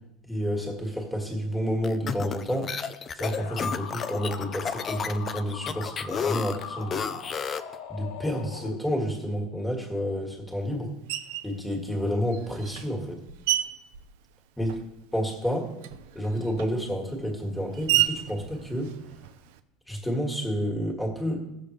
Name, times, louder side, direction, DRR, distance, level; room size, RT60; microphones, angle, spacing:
voice 1, 0.2-2.7 3.1-7.1 7.9-10.9 11.4-13.2 14.6-14.7 15.1-15.7 16.1-18.9 19.9-21.4, equal, 5° left, -1 dB, 1.8 m, -30 dB
sound 1, 1.8-7.7, left 7 dB, 25° left, 0.4 m, -32 dB
sound 2, 3.2-9.2, left 6 dB, 75° left, 1.2 m, -41 dB
Screech, 11.1-11.6 12.3-15.0 15.3-19.6, right 14 dB, 80° right, 0.6 m, -32 dB
16.0 x 7.0 x 3.2 m, 0.88 s
cardioid pair, 160°, 0 cm